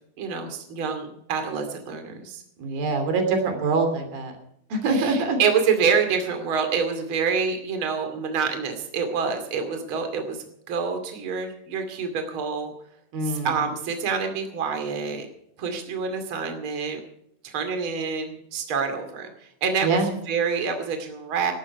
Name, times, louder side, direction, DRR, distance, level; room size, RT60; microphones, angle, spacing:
voice 1, 0.2-2.4 4.9-12.7 13.2-15.3 15.6-17.0 17.4-19.3 19.6-20.0 20.3-21.5, right 6 dB, 40° right, 6 dB, 3.0 m, -27 dB
voice 2, 2.6-4.4 4.7-5.4 13.1-13.5 19.8-20.1, right 3 dB, 90° right, 6 dB, 4.8 m, -24 dB
19.5 x 12.5 x 4.7 m, 0.72 s
omnidirectional pair, 4.0 m